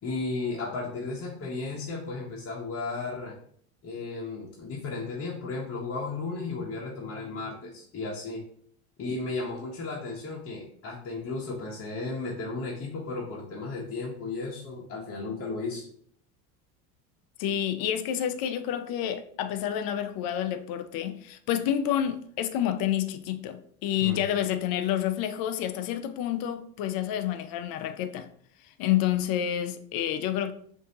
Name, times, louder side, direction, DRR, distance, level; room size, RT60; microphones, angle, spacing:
voice 1, 0.0-3.3 3.8-8.4 9.0-15.9 24.0-24.2, left 3 dB, 30° left, 1.1 m, -34 dB
voice 2, 17.4-28.3 28.8-30.5, left 10 dB, 50° left, 0.6 m, -29 dB
6.1 x 2.8 x 2.9 m
hypercardioid pair, 90°, 45 cm